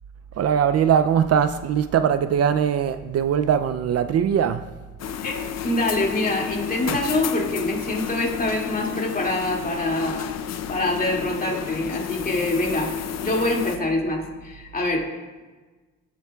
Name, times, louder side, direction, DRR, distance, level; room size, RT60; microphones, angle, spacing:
voice 1, 0.4-4.6 6.9-7.0, right 8 dB, 55° right, 0.4 m, -21 dB
sound 1, 5.0-13.8, left 10 dB, 60° left, 0.7 m, -31 dB
voice 2, 5.6-10.3 10.7-12.9 13.2-15.1, left 2 dB, 30° left, 2.3 m, -25 dB
16.5 x 7.4 x 2.3 m
cardioid pair, 90°, 30 cm